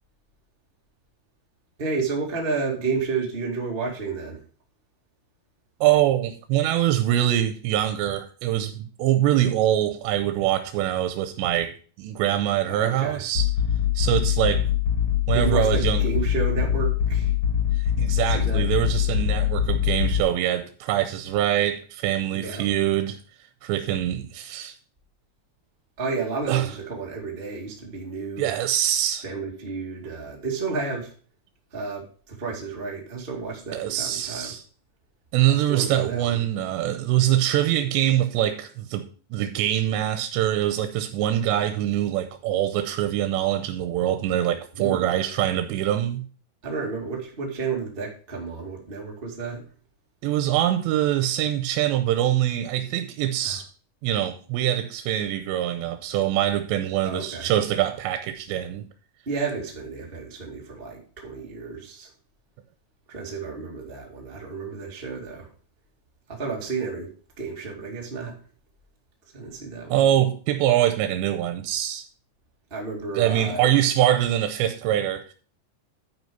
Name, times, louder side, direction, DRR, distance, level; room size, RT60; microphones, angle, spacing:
voice 1, 1.8-4.4 12.7-13.2 15.3-17.3 18.2-18.7 22.3-22.6 26.0-28.5 29.2-31.1 31.7-34.5 35.5-36.4 44.8-45.1 46.6-49.6 53.4-53.6 57.0-57.5 59.2-62.1 63.1-65.5 66.3-68.4 69.3-70.0 72.7-73.7, right 4 dB, 20° right, 1.4 m, -31 dB
voice 2, 5.8-13.5 14.0-14.7 15.3-16.0 18.0-23.2 23.6-24.8 26.5-26.7 28.4-29.2 33.7-34.6 35.3-39.0 39.3-46.2 50.2-53.7 54.0-58.9 69.9-72.1 73.2-75.2, right 12 dB, 90° right, 2.9 m, -24 dB
sound 1, 13.3-20.2, left 9 dB, 45° left, 2.1 m, -23 dB
11.0 x 5.2 x 5.4 m
omnidirectional pair, 5.0 m